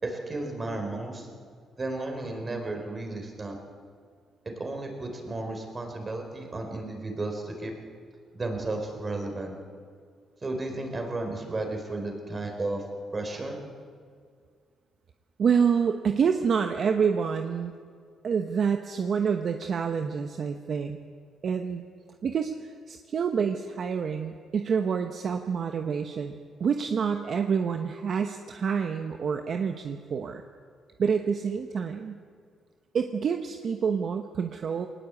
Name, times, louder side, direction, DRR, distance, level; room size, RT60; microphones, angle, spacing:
voice 1, 0.0-1.3 1.8-3.6 4.4-7.7 8.3-9.5 10.4-12.8 13.1-13.6, right 2 dB, 30° right, 3 dB, 4.4 m, -33 dB
voice 2, 15.4-17.7 18.2-21.0 21.4-21.8 22.2-30.4 31.0-32.2 32.9-34.9, right 6 dB, 55° right, 6 dB, 1.0 m, -27 dB
21.0 x 19.5 x 8.4 m, 2.1 s
cardioid pair, 105°, 0 cm